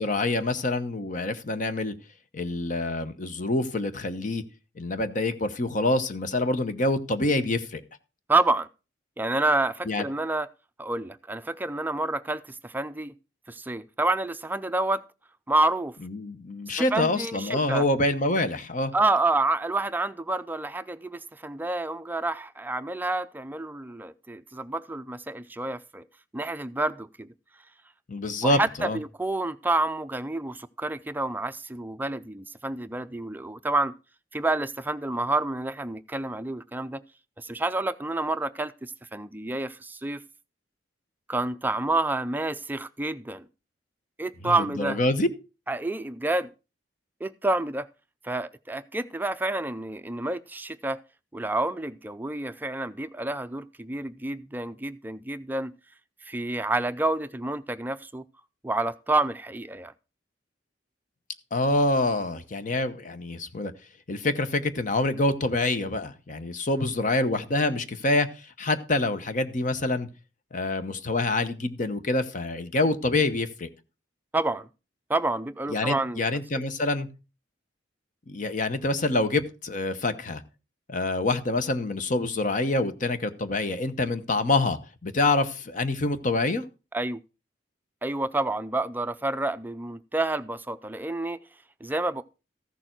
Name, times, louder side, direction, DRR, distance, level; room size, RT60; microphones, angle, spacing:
voice 1, 0.0-1.9 2.3-4.4 4.8-7.8 9.9-10.0 16.0-18.9 28.1-29.0 44.4-45.3 61.5-63.7 64.1-70.1 70.5-73.7 75.7-77.1 78.3-80.4 80.9-86.6, left 2 dB, 45° left, 0.9 m, -26 dB
voice 2, 8.3-8.7 9.2-10.5 10.8-13.1 13.5-15.0 15.5-16.0 16.9-17.8 18.9-26.1 26.3-27.3 28.4-33.9 34.3-37.0 37.4-40.2 41.3-43.4 44.2-45.0 45.7-46.5 47.2-47.9 48.2-51.0 51.3-55.7 56.2-58.2 58.6-59.9 74.3-74.7 75.1-76.2 76.5-76.6 86.9-87.2 88.0-91.4 91.8-92.2, right 2 dB, 10° right, 0.4 m, -28 dB
14.0 x 6.8 x 4.4 m
head